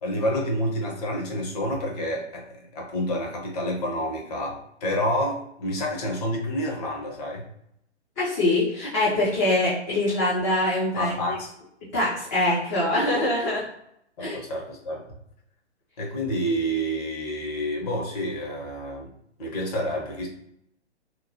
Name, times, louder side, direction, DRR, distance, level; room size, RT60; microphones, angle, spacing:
voice 1, 0.0-7.4 11.0-11.5 14.2-15.0 16.0-19.1 19.4-20.3, equal, 35° left, 0 dB, 0.8 m, -28 dB
voice 2, 8.2-11.1 11.9-13.6 14.2-14.4, left 1 dB, 15° left, -8 dB, 0.4 m, -23 dB
2.9 x 2.3 x 2.6 m, 0.74 s
figure-of-eight pair, 130°, 34 cm